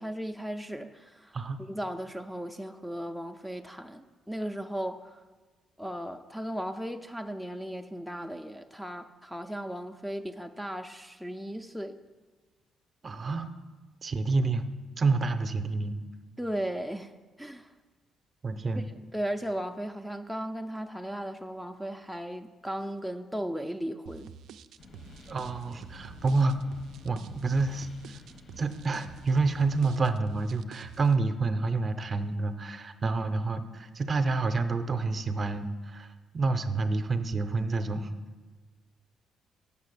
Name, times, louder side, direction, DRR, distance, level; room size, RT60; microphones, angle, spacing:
voice 1, 0.0-5.2 5.8-12.0 16.4-17.1 17.4-17.7 19.1-24.3, equal, ahead, 7 dB, 0.4 m, -36 dB
voice 2, 13.0-13.5 14.0-14.7 15.0-16.0 18.4-18.9 25.3-26.6 27.0-28.2 28.6-38.1, right 3 dB, 40° right, 9 dB, 0.6 m, -28 dB
sound 1, 24.1-31.2, right 8 dB, 75° right, 0.3 m, -48 dB
sound 2, 24.8-29.8, left 3 dB, 55° left, 1.0 m, -51 dB
7.0 x 5.4 x 6.7 m, 1.3 s
cardioid pair, 90°, 0 cm